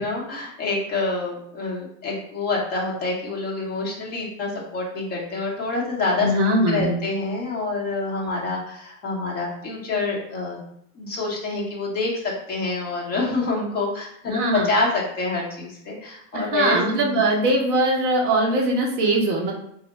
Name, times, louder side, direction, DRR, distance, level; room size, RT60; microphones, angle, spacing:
voice 1, 0.0-6.3 6.7-10.6 10.9-17.2, left 3 dB, 25° left, -3 dB, 0.9 m, -27 dB
voice 2, 6.2-7.0 14.3-14.7 16.3-19.5, right 1 dB, 25° right, -1 dB, 0.5 m, -21 dB
3.4 x 2.1 x 4.0 m, 0.71 s
supercardioid pair, 175°, 39 cm